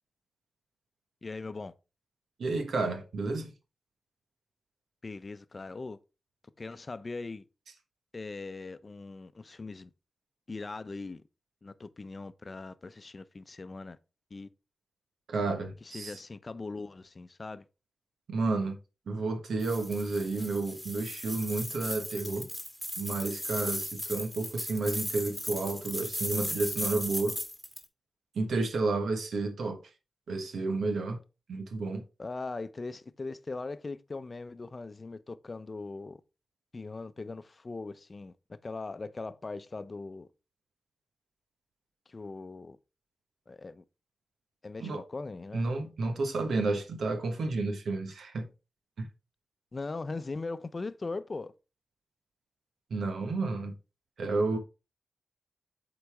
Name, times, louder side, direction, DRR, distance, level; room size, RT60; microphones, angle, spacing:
voice 1, 1.2-1.7 5.0-6.0 6.6-7.4 8.1-9.9 10.5-11.2 11.6-14.0 14.3-14.5 15.8-17.6 32.2-36.2 36.7-38.3 38.6-40.3 42.1-42.8 43.5-43.8 44.6-45.7 49.7-51.5, left 3 dB, 45° left, 0.6 m, -40 dB
voice 2, 2.4-3.5 15.3-16.2 18.3-18.8 19.1-22.5 23.0-27.4 28.3-29.8 30.3-31.2 31.5-32.0 44.8-45.0 45.5-48.5 49.0-49.1 52.9-53.7 54.2-54.6, right 3 dB, 80° right, 1.1 m, -31 dB
sound 1, 19.6-27.8, equal, ahead, 1.8 m, -37 dB
7.9 x 4.1 x 3.5 m
cardioid pair, 45°, 0 cm